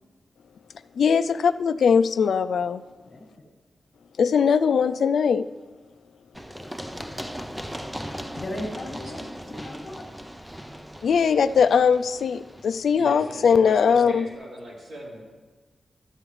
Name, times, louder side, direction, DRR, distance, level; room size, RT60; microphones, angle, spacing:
voice 1, 1.0-2.8 4.2-5.5 11.0-14.3, left 6 dB, 80° left, 11 dB, 0.3 m, -20 dB
voice 2, 3.0-3.5 7.0-7.3 8.4-9.2 9.5-10.1, left 1 dB, 45° left, -1 dB, 1.4 m, -36 dB
Run, 6.3-14.0, equal, 5° right, 0.4 m, -39 dB
voice 3, 12.9-15.2, equal, 65° right, -4 dB, 2.9 m, -39 dB
13.0 x 8.6 x 3.2 m, 1.3 s
wide cardioid pair, 160°, 0 cm